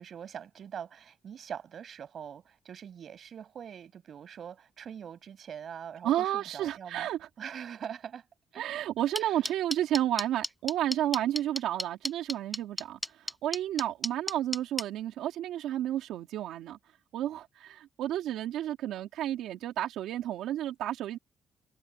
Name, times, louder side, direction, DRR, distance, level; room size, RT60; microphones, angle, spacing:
voice 1, 0.0-7.1 7.4-8.3 8.5-8.6 9.2-9.4, right 8 dB, 60° right, 6.4 m, -43 dB
voice 2, 6.0-7.3 8.6-16.8 17.1-21.2, right 12 dB, 85° right, 2.8 m, -31 dB
sound 1, 9.2-14.8, equal, 5° left, 0.8 m, -32 dB
cardioid pair, 90°, 0 cm